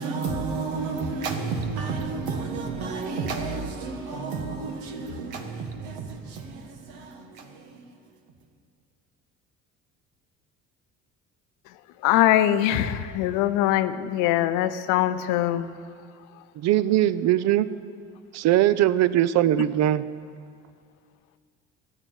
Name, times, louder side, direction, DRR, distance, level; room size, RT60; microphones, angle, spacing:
voice 1, 0.0-7.9, right 4 dB, 85° right, 1.6 m, -31 dB
voice 2, 12.0-15.7, left 12 dB, 85° left, 0.7 m, -22 dB
voice 3, 16.6-17.7 18.3-20.1, right 13 dB, 60° right, 0.6 m, -21 dB
13.5 x 9.1 x 8.2 m
supercardioid pair, 80°, 31 cm